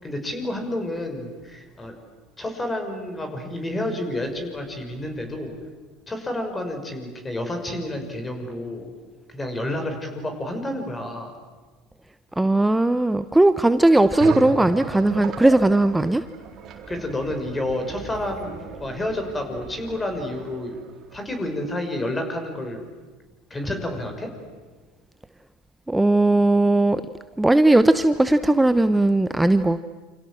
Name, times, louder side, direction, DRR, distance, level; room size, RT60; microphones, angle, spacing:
voice 1, 0.0-1.9 2.4-5.5 6.1-8.9 9.3-11.3 16.9-20.8 21.1-22.9 23.5-24.3, left 1 dB, 15° left, 5 dB, 6.2 m, -30 dB
voice 2, 12.4-16.2 25.9-27.0 27.4-29.8, right 2 dB, 10° right, 11 dB, 0.9 m, -18 dB
sound 1, 14.2-21.4, right 6 dB, 45° right, 3.7 m, -36 dB
28.0 x 27.0 x 7.7 m, 1.3 s
hypercardioid pair, 80°, 0 cm